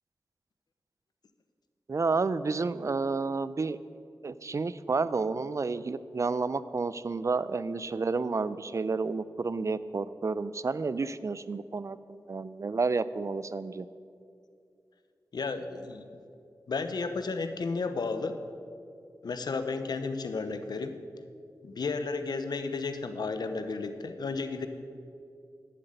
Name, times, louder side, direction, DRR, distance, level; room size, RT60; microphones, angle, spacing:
voice 1, 1.9-3.8 4.2-13.9, right 4 dB, 45° right, 16 dB, 0.5 m, -30 dB
voice 2, 15.3-16.0 16.7-18.4 19.2-20.9 21.6-24.7, left 4 dB, 75° left, 9 dB, 0.9 m, -33 dB
11.0 x 7.5 x 8.1 m, 2.4 s
cardioid pair, 55°, 7 cm